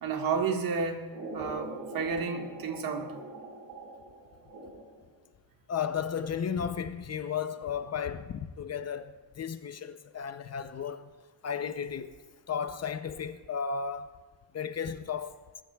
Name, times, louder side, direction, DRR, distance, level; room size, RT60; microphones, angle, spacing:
voice 1, 0.0-1.1 1.3-3.1, right 5 dB, 60° right, 1.7 m, -31 dB
sound 1, 1.1-5.1, right 2 dB, 75° right, 5.0 m, -43 dB
voice 2, 5.7-11.1 11.4-12.2 12.5-14.2 14.5-15.4, left 7 dB, 40° left, 0.6 m, -34 dB
22.0 x 14.0 x 2.3 m
cardioid pair, 135°, 40 cm